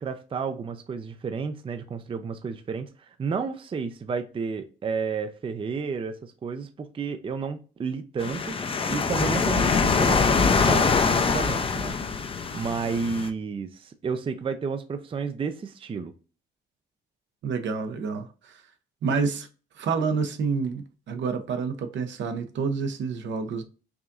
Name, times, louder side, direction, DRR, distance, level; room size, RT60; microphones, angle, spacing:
voice 1, 0.0-8.6 8.9-12.0 12.5-16.1, right 5 dB, 25° right, 0.4 m, -31 dB
sound 1, 8.2-13.3, left 5 dB, 25° left, 0.5 m, -23 dB
voice 2, 17.4-18.6 19.0-19.5 19.8-23.6, right 5 dB, 70° right, 0.7 m, -28 dB
4.8 x 2.5 x 2.5 m
cardioid pair, 90°, 20 cm